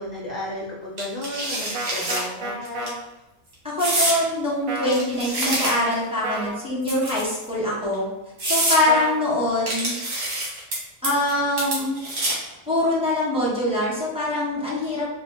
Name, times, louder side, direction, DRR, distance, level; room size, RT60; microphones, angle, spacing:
voice 1, 0.0-2.9, left 1 dB, 45° left, -4 dB, 0.6 m, -33 dB
sound 1, 1.0-2.2 2.6-2.9 3.8-4.2 4.8-6.0 6.8-7.4 7.9-8.0 8.4-8.8 9.7-10.8 11.0-11.3 11.6-12.5, right 1 dB, 70° right, 1.5 m, -26 dB
sound 2, 1.7-2.9 4.7-5.0 6.2-6.6 8.9-9.2, right 2 dB, 85° right, 1.1 m, -30 dB
voice 2, 3.7-8.1 8.4-9.9 11.0-12.0 12.7-15.1, left 1 dB, 5° right, -8 dB, 1.2 m, -23 dB
3.7 x 2.1 x 4.2 m, 1.0 s
omnidirectional pair, 1.4 m